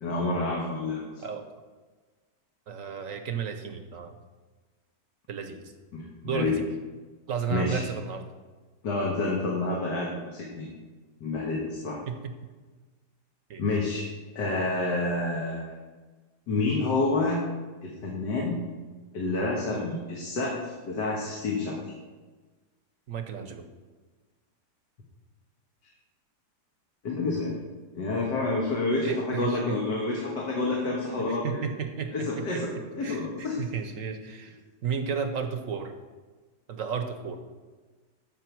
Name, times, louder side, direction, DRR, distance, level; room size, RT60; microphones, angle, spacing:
voice 1, 0.0-1.0 5.9-6.6 7.5-7.8 8.8-10.7 11.2-12.0 13.6-14.1 14.4-15.7 16.5-17.5 17.8-18.6 19.1-21.8 27.0-27.6 27.9-31.6 32.1-33.6, left 2 dB, 85° left, -2 dB, 2.0 m, -28 dB
voice 2, 2.7-4.2 5.3-5.6 6.2-6.5 7.3-8.3 12.1-12.5 13.5-13.6 23.1-23.7 29.0-29.8 31.3-32.6 33.0-34.5 34.8-36.0 36.7-37.4, right 6 dB, 60° right, 7 dB, 1.0 m, -33 dB
14.0 x 5.4 x 4.6 m, 1.3 s
omnidirectional pair, 1.8 m